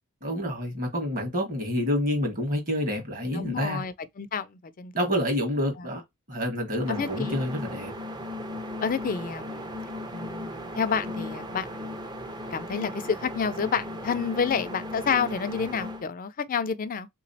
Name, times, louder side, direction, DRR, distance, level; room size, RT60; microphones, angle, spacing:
voice 1, 0.2-3.8 4.9-6.0 6.3-7.9, equal, 40° right, 1.4 m, -28 dB
voice 2, 3.3-4.9 5.8-5.9 6.9-7.5 8.8-9.7 10.1-12.0 12.5-17.1, left 6 dB, 40° left, 0.4 m, -29 dB
sound 1, 6.8-16.1, left 1 dB, 20° right, 0.5 m, -37 dB
3.6 x 3.0 x 2.7 m
head